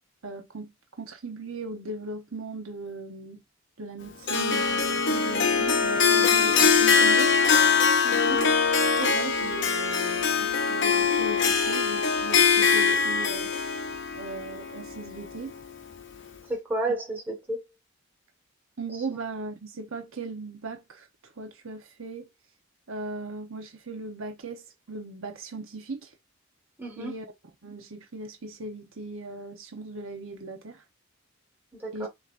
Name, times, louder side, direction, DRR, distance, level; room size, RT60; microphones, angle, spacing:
voice 1, 0.2-0.7 1.0-3.4 3.8-7.3 8.3-8.5 9.0-13.5 14.1-15.5 18.8-21.1 21.4-22.3 22.9-26.1 27.0-27.3 27.6-30.8 31.9-32.1, right 3 dB, 70° right, 1.0 m, -38 dB
Harp, 4.3-15.5, left 5 dB, 55° left, 0.7 m, -23 dB
voice 2, 8.0-8.4 16.5-17.6 26.8-27.1 31.8-32.1, right 2 dB, 10° right, 1.6 m, -31 dB
6.5 x 2.9 x 2.6 m
head